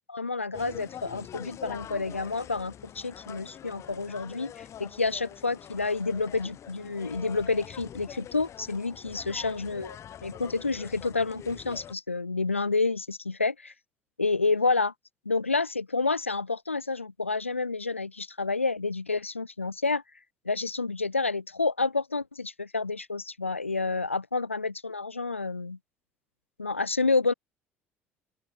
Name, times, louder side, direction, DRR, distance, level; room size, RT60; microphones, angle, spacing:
voice 1, 0.1-10.0 10.2-13.7 14.2-14.9 15.2-20.0 20.4-25.8 26.6-27.3, left 3 dB, 90° left, 1.6 m, -29 dB
sound 1, 0.5-11.9, left 10 dB, 45° left, 2.9 m, -44 dB
open air
figure-of-eight pair, 55°, 7 cm